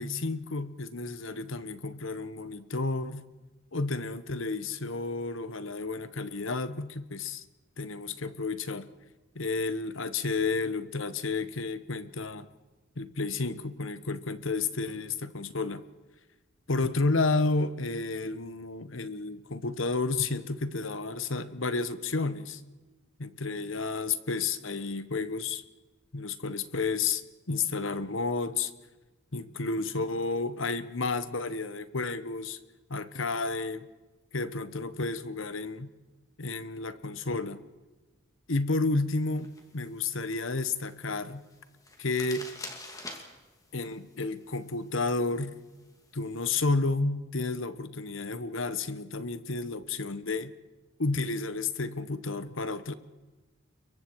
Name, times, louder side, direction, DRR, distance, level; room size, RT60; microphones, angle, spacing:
voice 1, 0.0-3.3 3.7-7.4 7.8-8.9 9.3-12.5 13.0-15.8 16.7-22.6 23.2-25.6 26.1-28.7 29.3-32.6 32.9-33.9 34.3-35.9 36.4-37.6 38.5-41.4 42.0-42.5 43.7-45.6 46.1-50.5 51.0-52.9, left 3 dB, 75° left, 13 dB, 1.2 m, -31 dB
sound 1, 39.2-46.6, left 2 dB, 15° left, 2.6 m, -49 dB
29.5 x 23.0 x 4.8 m, 1.2 s
head